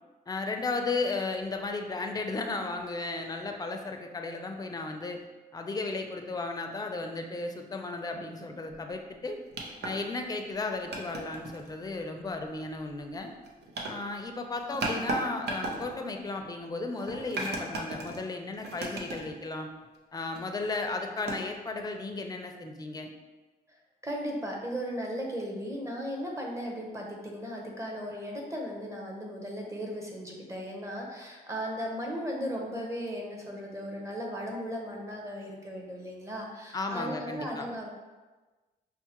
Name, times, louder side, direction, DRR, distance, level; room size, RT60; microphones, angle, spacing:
voice 1, 0.3-5.2 5.5-9.4 9.8-13.3 13.8-19.7 20.1-23.1 36.7-37.7, left 3 dB, 25° left, 3 dB, 0.4 m, -34 dB
sound 1, 8.7-8.8 9.5-10.1 10.6-11.7 12.4-12.6 13.2-13.9 14.5-15.2 15.5-16.0 17.0-18.2 18.5-19.3 19.8-19.9 20.2-20.4 21.2-21.3, right 2 dB, 85° right, 0.6 m, -35 dB
voice 2, 24.0-37.9, equal, 15° right, -1 dB, 0.8 m, -36 dB
5.4 x 2.1 x 2.9 m, 1.3 s
cardioid pair, 90°, 17 cm